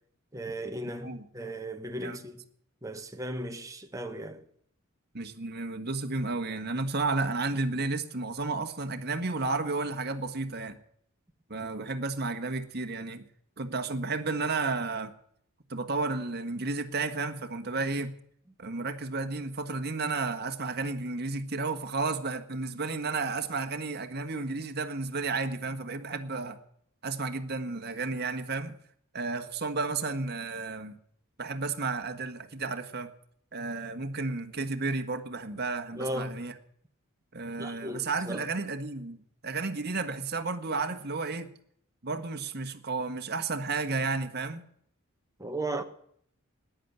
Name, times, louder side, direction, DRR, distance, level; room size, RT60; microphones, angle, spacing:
voice 1, 0.3-2.4 2.8-4.4 35.9-36.4 37.6-38.4 45.4-45.8, right 1 dB, 15° right, 1.5 m, -36 dB
voice 2, 5.1-10.8 11.5-13.2 13.6-15.1 15.7-18.1 18.6-26.6 27.0-28.8 29.1-30.9 31.4-33.1 33.5-36.5 37.3-39.2 39.4-41.5 42.0-44.6, right 3 dB, 50° right, 1.6 m, -32 dB
14.0 x 10.5 x 9.4 m
head